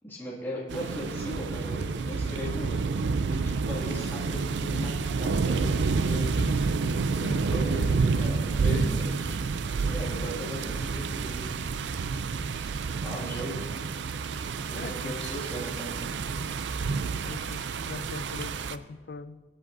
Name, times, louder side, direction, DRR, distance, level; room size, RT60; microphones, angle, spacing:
voice 1, 0.0-2.8 3.3-5.8 6.0-6.7 7.3-11.5 12.5-12.7 13.0-13.7 14.7-16.9, equal, 10° left, 2.1 m, -38 dB
sound 1, 0.7-18.8, right 4 dB, 80° right, 0.4 m, -29 dB
voice 2, 7.1-7.9 14.7-15.3 17.2-19.4, left 4 dB, 60° left, 0.4 m, -41 dB
24.0 x 8.5 x 2.6 m
head